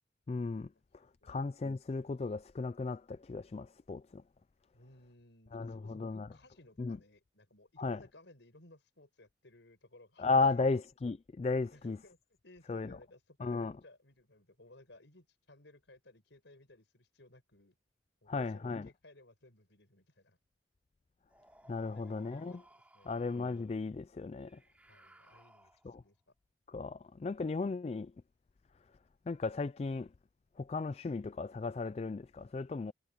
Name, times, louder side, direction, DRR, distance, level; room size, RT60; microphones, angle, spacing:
voice 1, 0.3-0.7 1.2-4.2 5.5-6.3 6.8-7.0 7.8-8.0 10.2-12.0 12.7-13.0 13.4-13.7 18.3-18.9 21.7-22.6 23.1-24.6 25.8-26.0 26.7-28.1 29.3-30.1 30.6-32.9, left 3 dB, 35° left, 0.3 m, -35 dB
voice 2, 1.0-1.4 4.7-10.3 10.5-10.7 11.7-12.2 12.4-17.7 18.2-20.4 21.9-22.5 22.9-23.4 24.9-25.7 26.0-26.3, left 2 dB, 80° left, 5.0 m, -60 dB
sound 1, 21.3-23.8 24.4-26.1, right 1 dB, 10° right, 2.9 m, -63 dB
head